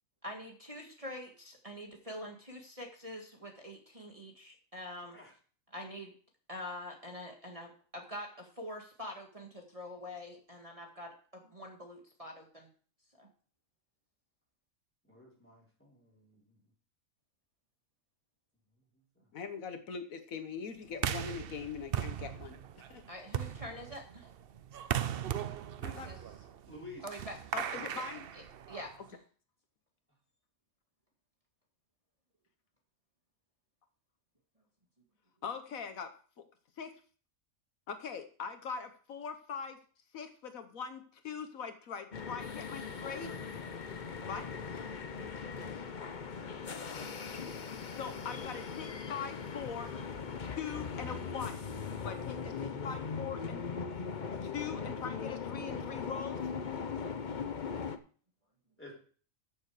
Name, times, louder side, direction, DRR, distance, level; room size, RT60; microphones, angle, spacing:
voice 1, 0.2-5.2 5.7-6.1 6.5-12.7 13.2-13.3 23.1-24.3 25.9-26.2 27.0-27.4 28.3-29.2, left 1 dB, 25° right, 0 dB, 1.9 m, -45 dB
voice 2, 15.1-16.6 19.2-19.3 25.8-26.0 26.7-27.1 27.7-27.9 43.0-43.3 46.4-46.5 52.8-52.9 54.3-54.5 58.8-58.9, left 1 dB, 10° left, -4 dB, 4.2 m, -51 dB
voice 3, 19.3-23.0 25.8-26.1 27.5-28.3 35.4-36.1 36.4-36.5 36.8-36.9 37.9-39.8 40.1-43.3 44.3-44.5 48.0-49.9 50.4-51.6 52.0-53.6 54.4-56.4, left 6 dB, 75° left, 8 dB, 1.5 m, -42 dB
sound 1, 20.9-29.1, right 10 dB, 55° right, 0.7 m, -38 dB
sound 2, 42.1-58.0, left 5 dB, 40° left, 0.9 m, -40 dB
14.0 x 6.8 x 4.9 m, 0.43 s
omnidirectional pair, 1.5 m